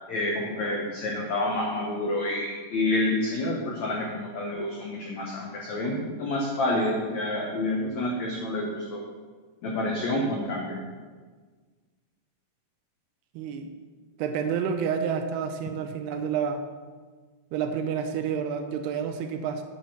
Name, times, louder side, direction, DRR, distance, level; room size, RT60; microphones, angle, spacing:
voice 1, 0.1-9.0 9.6-10.8, left 1 dB, 85° left, -1 dB, 1.6 m, -28 dB
voice 2, 13.4-13.7 14.2-16.6 17.5-19.6, right 7 dB, 80° right, 7 dB, 2.5 m, -29 dB
8.1 x 6.4 x 6.0 m, 1.5 s
omnidirectional pair, 4.9 m